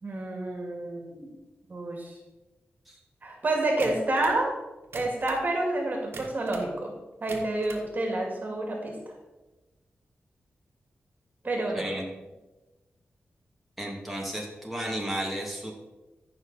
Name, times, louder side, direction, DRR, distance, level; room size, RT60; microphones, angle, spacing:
voice 1, 0.0-1.3 1.7-2.2 3.2-4.5 4.9-6.9 7.2-8.9 11.4-11.9, right 2 dB, 45° right, 1 dB, 2.3 m, -29 dB
sound 1, 3.8-4.4 4.8-5.5 6.1-6.7 7.1-7.9, right 3 dB, 80° right, 1.6 m, -43 dB
voice 2, 11.7-12.0 13.8-15.7, right 1 dB, ahead, -3 dB, 2.5 m, -33 dB
14.5 x 6.1 x 4.2 m, 1.1 s
wide cardioid pair, 95°, 4 cm